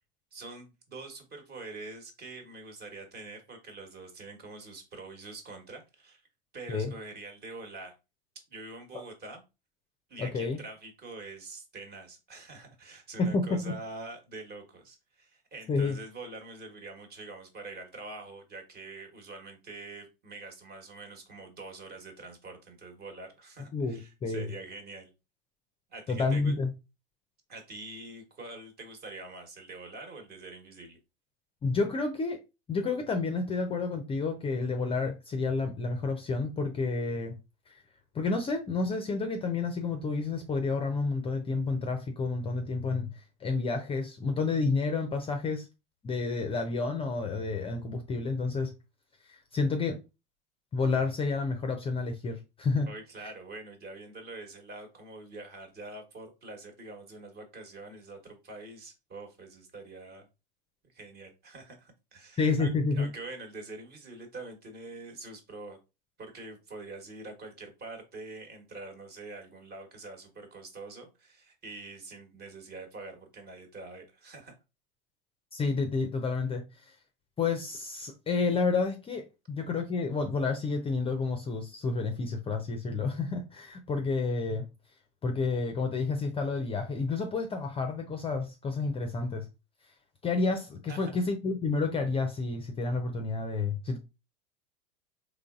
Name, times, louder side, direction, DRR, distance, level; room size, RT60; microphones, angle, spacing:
voice 1, 0.3-6.3 6.5-8.0 8.5-9.4 10.1-25.1 25.9-26.5 27.5-31.0 52.9-60.3 60.9-65.8 66.2-74.5 90.9-91.1, right 2 dB, 35° right, 1.3 m, -45 dB
voice 2, 10.2-10.6 13.2-13.7 15.7-16.0 23.7-24.5 26.1-26.7 31.6-32.4 32.7-37.4 37.7-37.8 38.1-45.7 46.0-48.7 49.3-50.0 50.7-52.9 62.4-63.1 75.5-77.0 77.4-84.6 85.2-89.5 90.2-94.0, left 4 dB, 20° left, 0.5 m, -30 dB
3.8 x 3.1 x 2.4 m
hypercardioid pair, 90°, 29 cm